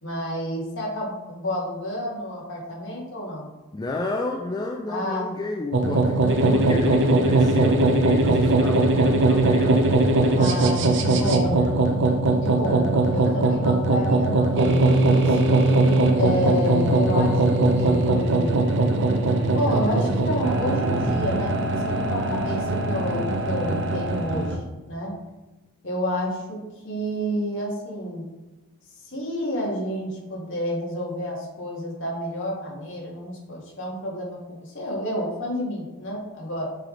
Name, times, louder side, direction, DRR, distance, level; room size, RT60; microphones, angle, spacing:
voice 1, 0.0-3.5 4.9-5.3 6.4-6.7 10.3-11.6 12.4-15.5 16.1-17.4 17.7-18.6 19.5-25.2 25.8-28.3 29.0-36.7, equal, 60° left, -3 dB, 1.8 m, -30 dB
voice 2, 3.7-11.7 12.6-12.9, left 2 dB, 20° left, 2 dB, 0.3 m, -32 dB
sound 1, 5.7-24.6, right 2 dB, 55° right, 0.7 m, -20 dB
7.4 x 3.4 x 3.8 m, 1.1 s
head